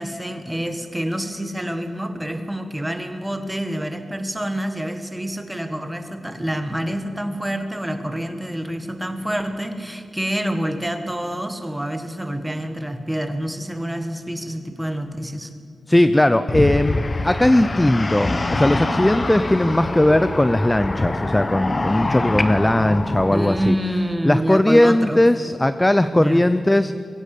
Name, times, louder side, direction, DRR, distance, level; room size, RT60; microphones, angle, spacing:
voice 1, 0.0-15.5 23.3-25.2 26.1-26.4, equal, 5° right, 7 dB, 1.7 m, -27 dB
voice 2, 15.9-23.8 24.2-26.9, left 1 dB, 10° left, 11 dB, 0.5 m, -18 dB
sound 1, 16.5-23.7, left 2 dB, 25° left, 0.9 m, -25 dB
22.0 x 16.5 x 8.4 m, 2.4 s
wide cardioid pair, 165°, 0 cm